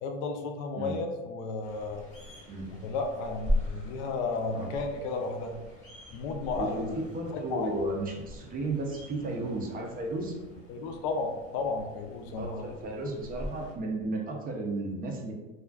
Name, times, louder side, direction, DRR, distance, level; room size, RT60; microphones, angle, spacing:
voice 1, 0.0-2.1 2.7-5.6 6.1-6.9 7.3-7.7 10.7-12.6, left 3 dB, 65° left, 4 dB, 0.5 m, -33 dB
sound 1, 1.6-13.7, left 1 dB, 20° left, 0.8 m, -39 dB
voice 2, 6.6-10.4 12.4-15.3, right 2 dB, 25° right, 2 dB, 0.4 m, -34 dB
2.3 x 2.3 x 2.2 m, 1.2 s
hypercardioid pair, 95°, 38 cm